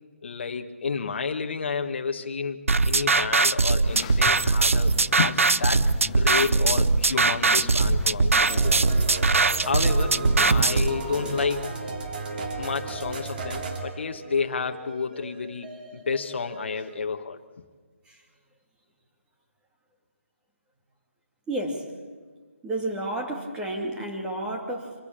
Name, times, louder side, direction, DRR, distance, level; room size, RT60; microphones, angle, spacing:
voice 1, 0.2-9.2 9.6-10.2 10.5-11.7 12.6-17.4, left 5 dB, 55° left, 6 dB, 1.5 m, -30 dB
sound 1, 2.7-10.9, right 3 dB, 80° right, 0.7 m, -21 dB
sound 2, 3.8-11.4, left 8 dB, 25° left, 0.8 m, -40 dB
sound 3, 8.5-17.0, right 3 dB, 40° right, 2.8 m, -35 dB
voice 2, 21.5-21.9 22.6-24.9, right 1 dB, 10° right, 1 dB, 2.6 m, -31 dB
25.5 x 15.0 x 8.7 m, 1.5 s
figure-of-eight pair, 155°, 7 cm